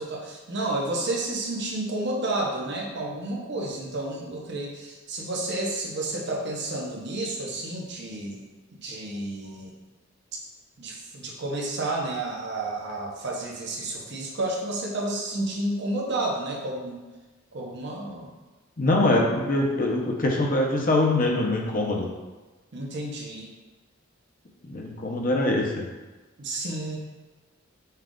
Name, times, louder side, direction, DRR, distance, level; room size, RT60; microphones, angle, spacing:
voice 1, 0.0-8.5 8.8-9.7 10.3-10.4 10.8-17.0 17.5-18.3 22.7-23.5 26.4-27.0, right 2 dB, 55° right, -1 dB, 0.8 m, -31 dB
voice 2, 18.8-22.1 24.7-25.8, left 2 dB, 40° left, 0 dB, 0.7 m, -23 dB
5.5 x 2.4 x 3.7 m, 1.2 s
head